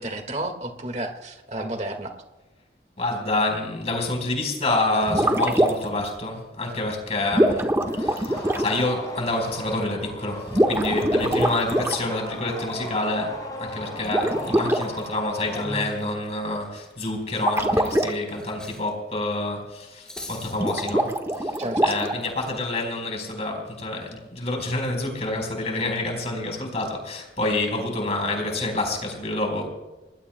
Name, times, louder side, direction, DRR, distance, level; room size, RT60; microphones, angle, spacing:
voice 1, 0.0-2.1 21.6-21.9, right 1 dB, 40° right, 5 dB, 1.8 m, -31 dB
voice 2, 3.0-7.7 8.0-29.7, left 2 dB, 40° left, 2 dB, 4.3 m, -28 dB
sound 1, 5.0-6.0 7.3-8.8 10.4-12.0 14.0-14.8 17.4-18.1 20.5-22.3, right 1 dB, 15° right, 1.3 m, -23 dB
sound 2, 7.8-16.2, left 1 dB, 20° left, 7.7 m, -36 dB
Cutlery silverware, 15.8-18.9 19.2-19.3 19.8-20.8, left 1 dB, 5° left, 4.9 m, -44 dB
29.5 x 20.5 x 2.2 m, 1.1 s
head